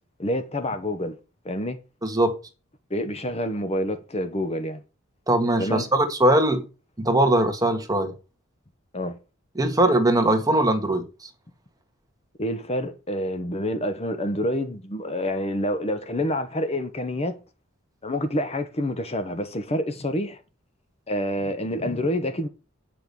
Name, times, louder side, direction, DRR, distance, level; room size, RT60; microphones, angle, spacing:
voice 1, 0.2-1.2 1.4-1.8 2.9-4.8 5.6-5.9 8.9-9.2 12.4-17.4 18.0-20.4 21.1-22.5, left 1 dB, 30° left, 1.0 m, -27 dB
voice 2, 2.0-2.4 5.3-6.6 7.0-8.1 9.5-11.0, right 1 dB, 15° right, 1.6 m, -20 dB
9.0 x 6.1 x 6.8 m
head